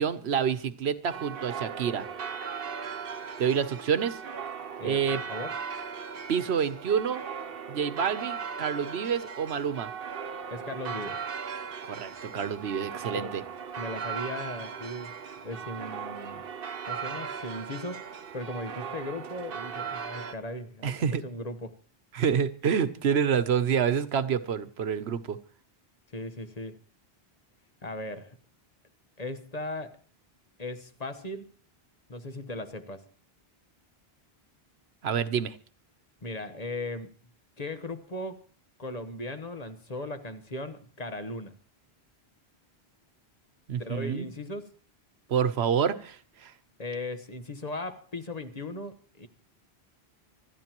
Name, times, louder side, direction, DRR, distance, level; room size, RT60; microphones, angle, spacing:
voice 1, 0.0-2.1 3.4-4.2 4.8-5.2 6.3-7.2 7.7-9.9 11.9-13.4 20.8-21.2 22.1-25.4 35.0-35.6 43.7-44.3 45.3-46.5, right 7 dB, 80° right, 1.1 m, -28 dB
sound 1, 1.1-20.3, right 6 dB, 65° right, 1.0 m, -38 dB
voice 2, 4.8-5.6 10.5-11.2 13.1-13.3 13.8-15.1 15.4-16.4 16.8-18.1 18.3-21.0 21.2-21.7 26.1-26.8 27.8-28.4 29.2-30.0 30.6-31.5 32.1-33.0 36.2-37.1 37.6-38.4 38.8-41.5 43.8-44.6 46.8-49.3, left 2 dB, 40° left, 1.2 m, -37 dB
25.5 x 13.0 x 3.0 m
omnidirectional pair, 1.1 m